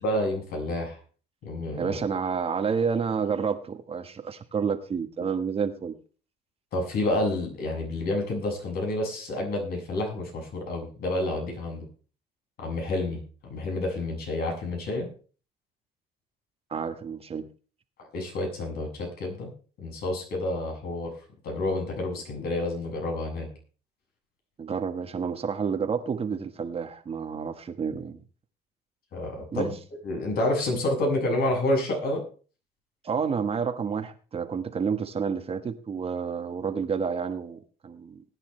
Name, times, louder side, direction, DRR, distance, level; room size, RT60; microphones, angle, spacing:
voice 1, 0.0-1.0 1.4-2.0 6.7-11.9 12.6-15.1 18.1-19.5 19.8-21.1 21.4-23.5 29.1-29.7 30.0-32.2, left 1 dB, 65° left, 7.0 m, -29 dB
voice 2, 1.7-6.0 16.7-17.5 24.6-28.2 29.5-29.7 33.0-38.2, right 6 dB, 35° right, 1.5 m, -29 dB
20.0 x 9.9 x 3.3 m
cardioid pair, 110°, 17 cm